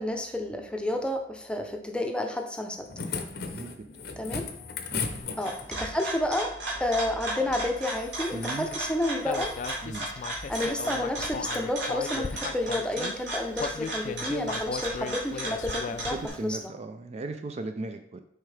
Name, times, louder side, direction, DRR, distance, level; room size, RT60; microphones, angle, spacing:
voice 1, 0.0-2.9 4.2-4.5 5.4-6.5 6.8-9.5 10.5-16.2 16.4-16.7, left 1 dB, 5° left, 3 dB, 0.6 m, -30 dB
sound 1, 2.6-5.9 7.8-8.8 9.2-9.8 10.3-10.8 11.4-11.7 12.2-12.5 13.8-13.9, left 5 dB, 60° left, 0.7 m, -38 dB
sound 2, 5.2-16.3, right 1 dB, 85° right, 2.3 m, -35 dB
voice 2, 8.3-8.7 9.8-10.1 16.0-18.2, right 2 dB, 35° right, 7 dB, 0.4 m, -37 dB
Human voice, 9.2-13.1 13.6-16.3, left 5 dB, 45° left, 0.3 m, -36 dB
6.4 x 4.7 x 3.3 m, 0.71 s
head